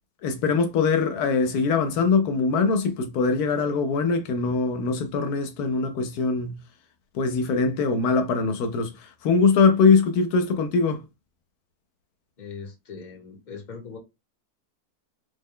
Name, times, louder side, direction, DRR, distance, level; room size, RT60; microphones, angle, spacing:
voice 1, 0.2-6.6 7.1-11.0, left 4 dB, 80° left, 1.1 m, -22 dB
voice 2, 12.4-14.0, left 5 dB, 35° left, 1.0 m, -40 dB
3.5 x 2.1 x 3.6 m
omnidirectional pair, 1.6 m